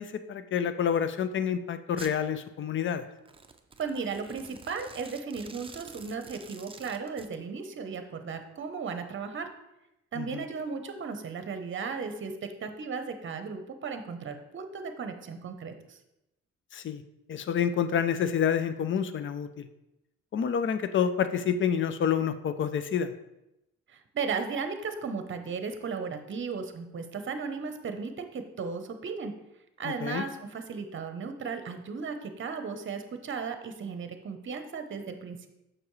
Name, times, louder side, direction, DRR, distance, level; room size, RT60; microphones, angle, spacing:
voice 1, 0.0-3.0 10.2-10.4 16.7-17.0 17.3-19.7 20.3-23.1 29.8-30.2, left 8 dB, 40° left, 12 dB, 0.5 m, -28 dB
Domestic sounds home sounds, 2.0-2.2 3.2-7.3, right 4 dB, 20° right, 0.6 m, -49 dB
voice 2, 3.8-9.5 10.1-16.0 23.9-29.3 29.8-35.5, right 5 dB, 40° right, 7 dB, 0.9 m, -35 dB
6.9 x 6.1 x 3.2 m, 0.90 s
cardioid pair, 90°, 30 cm